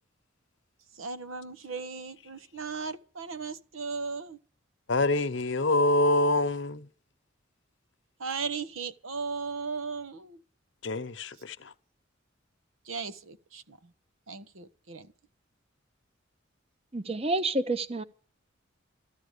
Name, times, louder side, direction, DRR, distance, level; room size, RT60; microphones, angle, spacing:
voice 1, 0.9-4.4 8.2-10.4 12.8-13.9 14.3-15.1, right 4 dB, 85° right, 1.0 m, -37 dB
voice 2, 4.9-6.9 10.8-11.7, left 2 dB, 65° left, 0.9 m, -26 dB
voice 3, 16.9-18.0, right 2 dB, 30° right, 0.8 m, -29 dB
14.5 x 12.0 x 6.8 m
head